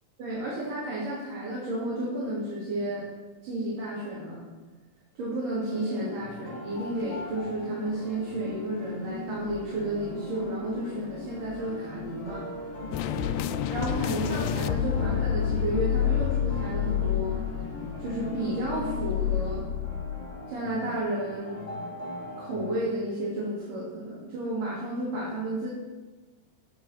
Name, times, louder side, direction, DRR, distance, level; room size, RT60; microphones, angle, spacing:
voice 1, 0.2-3.1 3.4-4.4 5.2-12.5 13.7-17.4 18.0-19.7 20.5-21.7 22.4-25.7, right 1 dB, 75° right, -7 dB, 4.5 m, -32 dB
sound 1, 5.7-22.7, equal, 20° left, 2.6 m, -41 dB
sound 2, 6.7-19.6, left 5 dB, 70° left, 1.3 m, -42 dB
sound 3, 12.9-20.4, left 10 dB, 90° left, 2.2 m, -29 dB
15.5 x 7.3 x 5.9 m, 1.3 s
omnidirectional pair, 3.8 m